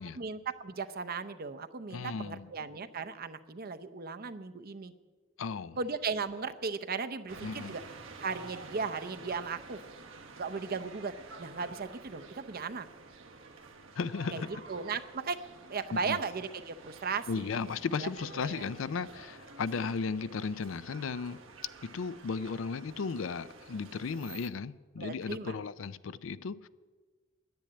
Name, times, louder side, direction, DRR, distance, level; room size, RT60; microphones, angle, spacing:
voice 1, 0.1-4.9 5.8-7.8 8.2-9.8 10.4-11.1 11.4-12.9 14.3-15.4 15.7-17.6 18.0-18.7 25.0-25.6, right 5 dB, 50° right, 0.7 m, -36 dB
voice 2, 1.9-2.5 5.4-5.8 7.4-7.7 14.0-14.5 15.9-16.2 17.3-21.4 21.8-26.7, left 5 dB, 75° left, 0.4 m, -35 dB
sound 1, 7.3-24.5, right 4 dB, 80° right, 1.3 m, -50 dB
10.5 x 9.8 x 8.6 m
head